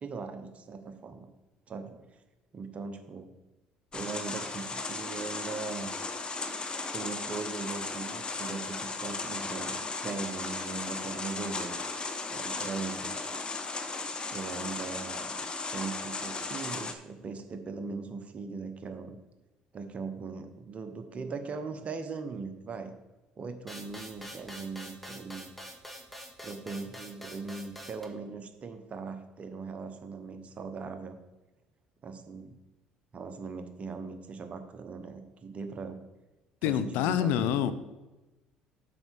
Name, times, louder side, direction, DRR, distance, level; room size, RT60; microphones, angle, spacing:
voice 1, 0.0-1.3 1.7-2.2 2.5-3.3 3.9-5.9 6.9-11.7 12.3-13.2 14.3-19.2 19.7-22.9 23.4-25.5 26.4-31.2 32.0-32.5 33.1-36.0 36.6-37.7, right 4 dB, 40° right, 8 dB, 0.9 m, -39 dB
sound 1, 3.9-16.9, left 3 dB, 30° left, 1.0 m, -36 dB
sound 2, 23.7-28.1, equal, 5° left, 1.9 m, -45 dB
voice 2, 36.6-37.7, left 10 dB, 75° left, 12 dB, 0.6 m, -27 dB
7.6 x 4.6 x 6.0 m, 1.1 s
supercardioid pair, 70°, 3 cm